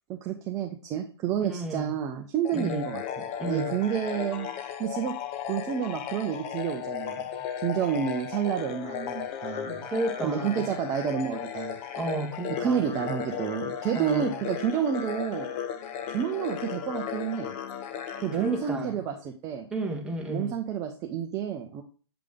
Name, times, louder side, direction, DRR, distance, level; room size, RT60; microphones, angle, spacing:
voice 1, 0.1-3.0 3.5-4.5 4.8-5.2 5.5-7.2 7.6-9.9 10.2-11.8 12.6-15.5 16.1-17.5 18.2-19.7 20.3-21.8, right 8 dB, 25° right, 0.7 m, -29 dB
voice 2, 1.4-1.9 2.5-2.8 3.4-3.7 9.8-10.7 11.9-12.9 13.9-14.3 18.3-18.9 19.7-20.6, right 2 dB, 5° right, 1.3 m, -32 dB
sound 1, 2.4-19.2, left 9 dB, 30° left, 0.6 m, -35 dB
7.8 x 3.3 x 3.5 m
figure-of-eight pair, 120°, 14 cm